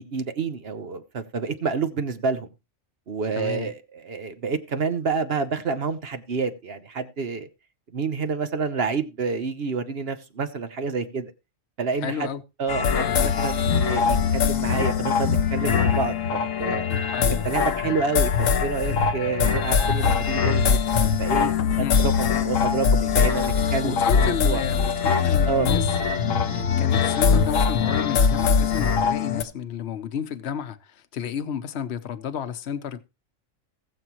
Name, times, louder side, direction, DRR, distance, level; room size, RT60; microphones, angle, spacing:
voice 1, 0.0-2.5 3.1-7.5 7.9-11.3 11.8-12.3 12.6-16.9 17.3-20.8 21.2-24.6 25.5-25.7, right 5 dB, 50° right, 1.1 m, -28 dB
voice 2, 3.3-3.7 12.0-12.4 12.9-13.2 17.1-17.4 21.8-22.0 23.6-25.9 26.2-33.0, left 8 dB, 60° left, 1.1 m, -32 dB
sound 1, 12.7-29.4, left 6 dB, 80° left, 1.4 m, -22 dB
19.5 x 7.1 x 3.0 m
omnidirectional pair, 1.4 m